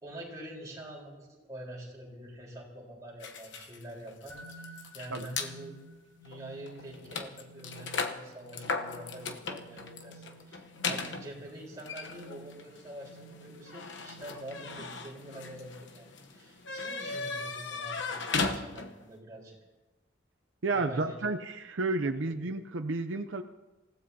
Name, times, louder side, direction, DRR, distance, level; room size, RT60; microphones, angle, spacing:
voice 1, 0.0-5.8 6.2-19.6 20.7-21.2 22.0-22.3, right 1 dB, 20° right, -4 dB, 4.1 m, -46 dB
sound 1, 3.2-5.5 6.3-6.4 6.7-19.1, left 4 dB, 75° left, 1.0 m, -37 dB
sound 2, 4.3-16.0, right 2 dB, 20° left, 4.0 m, -53 dB
voice 2, 20.6-23.4, right 3 dB, 85° right, 6 dB, 0.7 m, -31 dB
27.5 x 16.0 x 2.8 m, 1.1 s
head